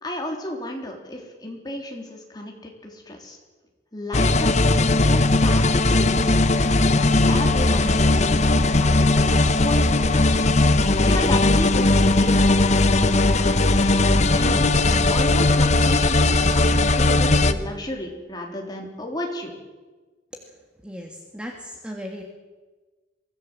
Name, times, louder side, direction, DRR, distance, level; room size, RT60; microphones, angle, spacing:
voice 1, 0.0-3.4 3.9-6.2 6.8-6.9 7.3-10.5 11.0-13.7 14.3-19.5, left 1 dB, 20° left, 1 dB, 3.6 m, -33 dB
sound 1, 4.1-17.5, left 2 dB, 40° left, 1.0 m, -18 dB
voice 2, 20.8-22.2, equal, 5° right, 1 dB, 1.9 m, -36 dB
23.0 x 16.0 x 7.6 m, 1.3 s
head